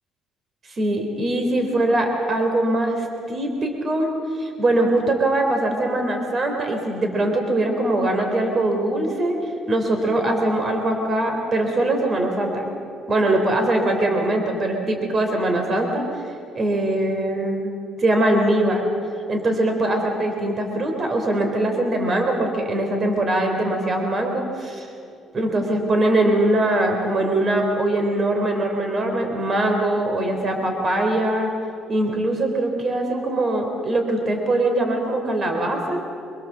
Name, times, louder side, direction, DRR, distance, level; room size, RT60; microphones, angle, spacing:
voice 1, 0.7-12.7 13.1-17.7 18.0-18.9 19.3-24.9 25.3-31.5 31.9-36.0, right 1 dB, 35° right, 3 dB, 3.5 m, -22 dB
25.0 x 22.5 x 7.4 m, 2.6 s
cardioid pair, 125°, 0 cm